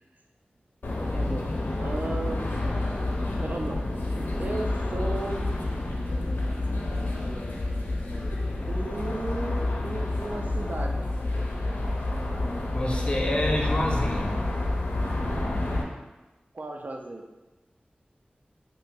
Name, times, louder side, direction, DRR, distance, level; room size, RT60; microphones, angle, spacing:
sound 1, 0.8-15.8, left 2 dB, 80° left, 0.5 m, -29 dB
voice 1, 1.1-1.5 1.8-2.4 3.4-3.8 4.4-5.5 8.7-11.0 16.5-17.2, right 2 dB, 55° right, 3 dB, 0.4 m, -34 dB
voice 2, 12.7-14.4, left 1 dB, 35° left, -1 dB, 0.6 m, -27 dB
2.7 x 2.5 x 3.8 m, 1.1 s
wide cardioid pair, 75°, 3 cm